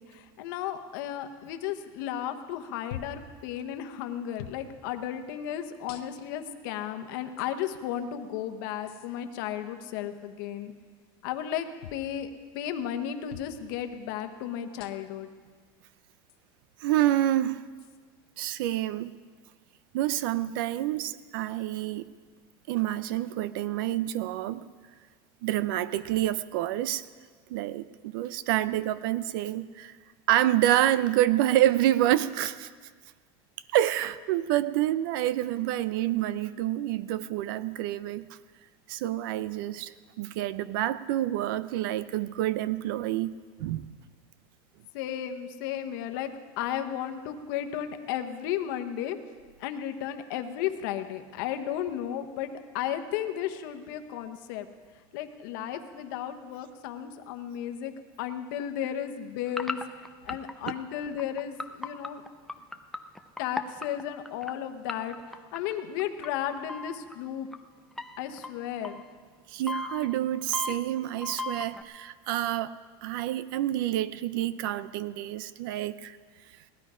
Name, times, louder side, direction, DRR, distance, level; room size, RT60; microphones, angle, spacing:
voice 1, 0.0-10.7 11.2-12.3 12.5-15.3 44.9-49.2 49.6-54.7 55.1-62.2 63.4-67.5 68.2-69.0, left 10 dB, 55° left, 8 dB, 1.0 m, -34 dB
sound 1, 2.9-3.3 4.4-4.6 5.9-6.4 7.4-7.5 8.9-9.1 11.8-12.1 13.3-13.5 14.8-15.2 16.3-16.4 17.8-18.0, left 10 dB, 80° left, 0.9 m, -43 dB
voice 2, 16.8-17.6 18.4-19.2 19.9-22.1 22.7-24.7 25.4-27.0 27.5-29.9 30.3-32.7 33.7-38.3 38.9-43.9 69.5-76.2, right 13 dB, 60° right, 16 dB, 0.5 m, -28 dB
sound 2, 59.5-64.5 64.9-66.3 66.7-67.1 67.5-67.6 68.0-69.0 69.7-71.8, left 2 dB, ahead, 0.3 m, -35 dB
18.0 x 12.5 x 4.9 m, 1.5 s
supercardioid pair, 180°, 13 cm